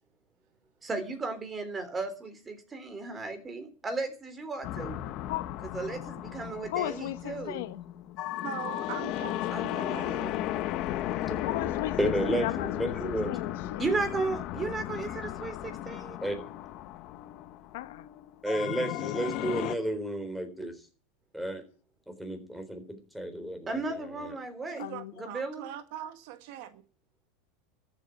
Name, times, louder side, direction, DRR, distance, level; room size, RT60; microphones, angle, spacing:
voice 1, 0.8-5.0 5.6-7.7 9.5-10.4 10.8-10.9 13.8-16.2 23.7-24.8 25.1-25.7, right 3 dB, 20° right, 3.6 m, -35 dB
sound 1, 4.6-19.8, left 13 dB, 50° left, 1.0 m, -35 dB
voice 2, 6.7-7.8 11.4-12.0 12.2-12.9 13.3-13.8 17.7-18.0 24.8-25.1, left 15 dB, 75° left, 1.2 m, -35 dB
voice 3, 8.4-10.3 24.7-26.8, right 10 dB, 65° right, 1.5 m, -41 dB
voice 4, 12.0-13.3 16.2-16.5 18.4-20.7 21.3-21.6 22.1-24.3, right 1 dB, ahead, 3.9 m, -32 dB
13.5 x 8.5 x 9.3 m
supercardioid pair, 130°, 0 cm